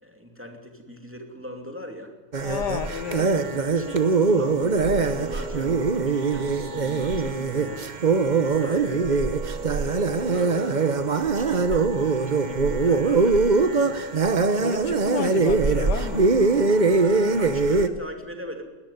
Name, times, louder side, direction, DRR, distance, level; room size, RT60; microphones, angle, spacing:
voice 1, 0.0-2.1 3.5-7.8 8.4-9.0 9.5-13.9 16.0-18.6, equal, 5° right, 2.6 m, -40 dB
sound 1, 2.3-17.9, right 4 dB, 35° right, 0.9 m, -22 dB
voice 2, 2.4-3.4 14.5-16.3, left 9 dB, 85° left, 1.6 m, -31 dB
20.5 x 13.5 x 9.9 m
omnidirectional pair, 1.8 m